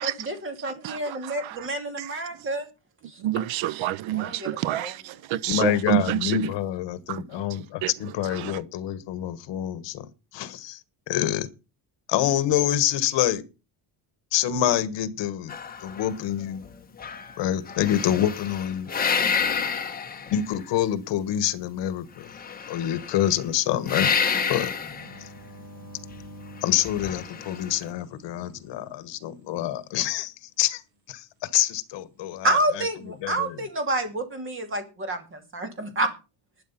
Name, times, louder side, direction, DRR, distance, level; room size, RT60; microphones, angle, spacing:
voice 1, 0.0-2.7 3.1-3.4 4.1-5.0 32.4-36.1, right 1 dB, 25° right, 2.6 m, -29 dB
voice 2, 0.8-1.7 2.0-2.1 3.2-6.4 7.1-7.2 7.8-7.9 8.4-8.6, right 14 dB, 75° right, 0.8 m, -28 dB
voice 3, 5.5-10.8 11.1-11.5 12.1-13.4 14.3-15.5 15.8-16.7 17.4-18.9 20.3-22.3 22.7-24.1 24.5-24.7 25.2-25.3 26.6-30.8 31.1-32.8 33.2-33.6, left 11 dB, 65° left, 1.3 m, -26 dB
sound 1, 15.5-16.7 17.0-20.7 22.3-23.4 23.9-25.2 26.7-27.8, left 6 dB, 20° left, 1.2 m, -29 dB
sound 2, 24.9-29.5 32.8-33.4, equal, 50° right, 6.2 m, -48 dB
12.0 x 9.9 x 5.7 m
cardioid pair, 180°, 47 cm